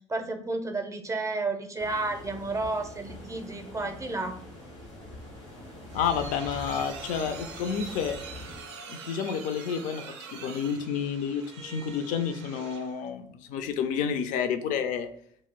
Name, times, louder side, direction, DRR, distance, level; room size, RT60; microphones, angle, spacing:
voice 1, 0.1-4.4, right 2 dB, 20° right, 6 dB, 0.5 m, -31 dB
sound 1, 1.8-8.6, left 1 dB, 90° left, 0.9 m, -44 dB
sound 2, 5.5-13.1, right 5 dB, 75° right, 0.4 m, -44 dB
voice 2, 5.9-8.2 8.9-10.1 10.3-15.1, left 7 dB, 60° left, 9 dB, 0.4 m, -30 dB
2.4 x 2.0 x 3.5 m, 0.65 s
figure-of-eight pair, 50°, 15 cm